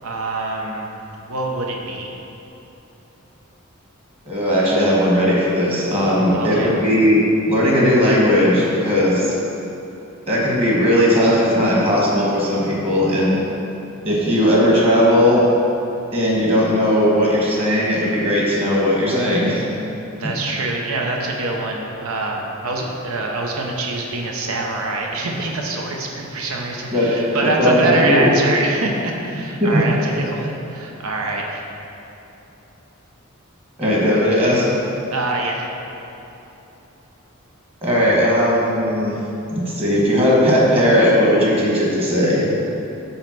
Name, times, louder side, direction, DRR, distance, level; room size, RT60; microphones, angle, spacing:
voice 1, 0.0-0.9 1.3-2.1 6.1-6.7 20.1-31.6 35.1-35.7, right 2 dB, 75° right, 0 dB, 0.8 m, -24 dB
voice 2, 4.2-7.2 7.5-9.4 10.3-13.4 14.0-15.4 16.1-19.6 26.9-27.1 27.4-28.3 29.6-29.8 33.8-34.6 37.8-39.2 39.5-42.5, equal, 25° right, -5 dB, 1.5 m, -17 dB
5.6 x 4.4 x 5.9 m, 3.0 s
head